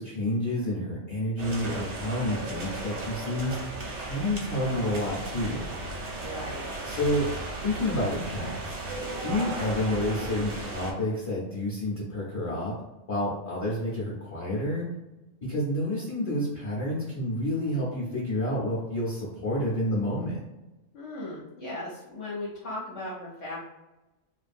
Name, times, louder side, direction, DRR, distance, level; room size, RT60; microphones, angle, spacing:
voice 1, 0.0-5.7 6.8-7.3 7.6-8.8 9.2-12.7 13.1-14.9 15.4-20.4, left 1 dB, 35° left, -7 dB, 0.8 m, -29 dB
sound 1, 1.4-10.9, right 2 dB, 65° right, 1.0 m, -35 dB
voice 2, 6.2-6.8 20.9-23.6, left 1 dB, 65° left, -6 dB, 1.0 m, -37 dB
2.7 x 2.4 x 2.5 m, 1.0 s
omnidirectional pair, 1.3 m